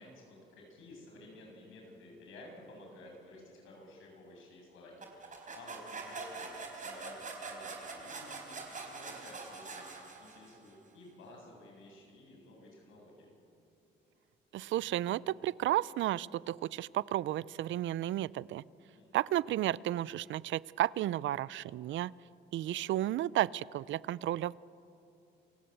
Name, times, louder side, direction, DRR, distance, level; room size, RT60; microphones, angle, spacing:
voice 1, 0.0-13.3 18.9-19.2 22.6-22.8, left 2 dB, 85° left, 0 dB, 7.5 m, -53 dB
sound 1, 5.0-10.7, right 4 dB, 40° right, 4.4 m, -44 dB
voice 2, 14.5-18.6 19.1-22.1 22.5-24.5, right 13 dB, 75° right, 21 dB, 0.5 m, -33 dB
28.0 x 16.5 x 8.1 m, 2.7 s
cardioid pair, 90°, 20 cm